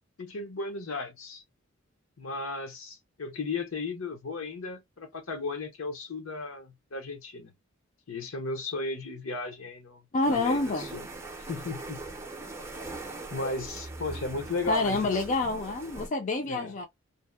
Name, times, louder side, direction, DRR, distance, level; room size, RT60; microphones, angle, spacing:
voice 1, 0.2-1.4 2.2-7.5 8.1-10.0 10.3-11.0 11.5-12.0 13.3-15.4 16.5-16.7, left 3 dB, 75° left, 0.7 m, -35 dB
voice 2, 10.1-10.9 14.7-16.9, left 2 dB, 35° left, 0.4 m, -27 dB
Cornish Seacave, 10.2-16.1, right 2 dB, 15° right, 0.5 m, -41 dB
2.7 x 2.0 x 2.3 m
head